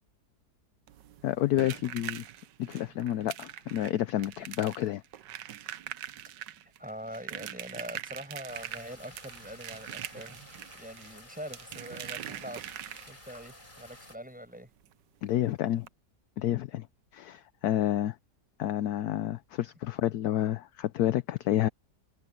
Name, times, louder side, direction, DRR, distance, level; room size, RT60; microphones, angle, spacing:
sound 1, 0.9-13.4 14.8-14.9 15.2-15.4 15.8-15.9, right 12 dB, 85° right, 1.4 m, -43 dB
voice 1, 1.2-2.2 2.6-5.0 15.2-15.9 16.4-16.9 17.1-18.2 18.6-21.7, left 12 dB, 70° left, 1.1 m, -29 dB
voice 2, 6.8-10.4 10.7-14.7, equal, 5° right, 7.3 m, -43 dB
sound 2, 8.5-14.2, left 1 dB, 25° left, 6.5 m, -52 dB
omnidirectional pair, 1.9 m